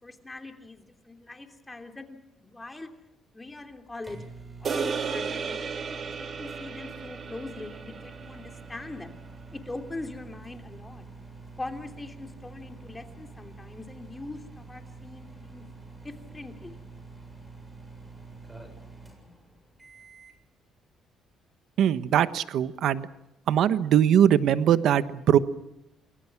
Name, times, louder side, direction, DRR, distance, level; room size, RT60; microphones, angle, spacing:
voice 1, 0.0-2.9 3.3-4.2 4.6-9.2 9.5-11.0 11.6-15.6 16.0-16.8, left 2 dB, 15° left, 6 dB, 2.9 m, -42 dB
sound 1, 3.5-20.4, right 3 dB, 15° right, 7.6 m, -47 dB
sound 2, 4.6-9.1, right 5 dB, 45° right, 3.1 m, -34 dB
voice 2, 21.8-23.1 23.5-25.4, right 10 dB, 70° right, 13 dB, 1.2 m, -21 dB
29.5 x 22.0 x 6.0 m, 0.87 s
cardioid pair, 105°, 0 cm